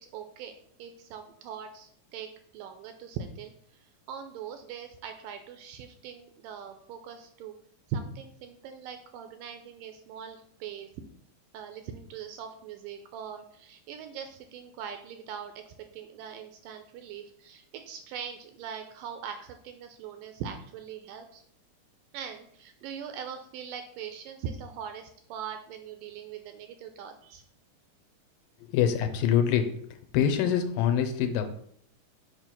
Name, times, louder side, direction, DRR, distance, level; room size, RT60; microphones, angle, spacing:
voice 1, 0.0-0.5 0.8-2.3 2.5-7.6 7.9-10.9 11.5-15.6 15.9-21.4 22.1-27.4, right 7 dB, 80° right, 7 dB, 2.0 m, -41 dB
voice 2, 28.7-29.7 30.1-31.5, left 9 dB, 80° left, 7 dB, 2.3 m, -24 dB
6.8 x 3.2 x 5.8 m, 0.65 s
omnidirectional pair, 4.2 m